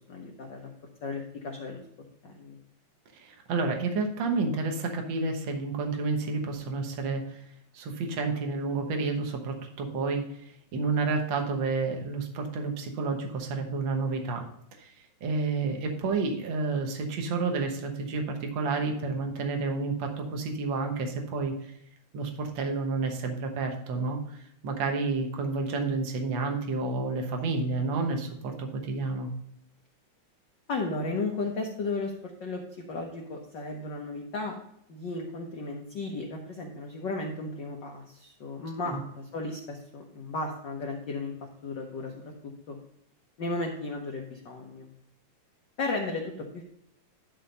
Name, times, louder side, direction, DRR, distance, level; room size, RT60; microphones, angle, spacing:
voice 1, 0.1-0.7 1.0-1.8 2.2-2.6 30.7-34.6 34.9-42.3 42.7-42.8 43.4-44.9 45.8-46.6, left 3 dB, 85° left, 1 dB, 0.9 m, -35 dB
voice 2, 3.2-7.4 7.7-10.2 10.7-14.4 14.8-14.9 15.2-21.5 22.1-24.4 24.6-29.3 38.9-39.0, right 3 dB, 55° right, 2 dB, 1.4 m, -30 dB
11.5 x 3.9 x 5.2 m, 0.72 s
omnidirectional pair, 3.4 m